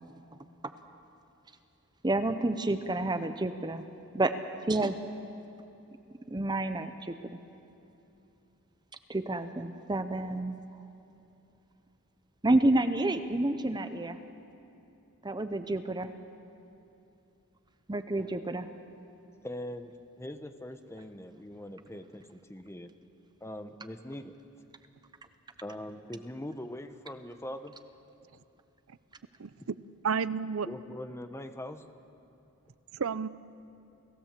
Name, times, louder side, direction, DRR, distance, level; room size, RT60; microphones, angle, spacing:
voice 1, 2.0-3.8 4.1-4.3 4.7-5.0 6.3-7.3 9.1-10.6 12.4-14.2 15.2-16.1 17.9-18.7, right 2 dB, 20° right, 9 dB, 0.7 m, -29 dB
voice 2, 19.4-19.9 20.2-22.9 23.4-24.4 25.6-27.8 30.6-31.8, left 1 dB, 10° left, 8 dB, 0.9 m, -42 dB
voice 3, 29.4-29.8 30.0-30.7 32.9-33.3, right 6 dB, 65° right, 16 dB, 0.6 m, -31 dB
29.0 x 16.5 x 7.5 m, 2.8 s
head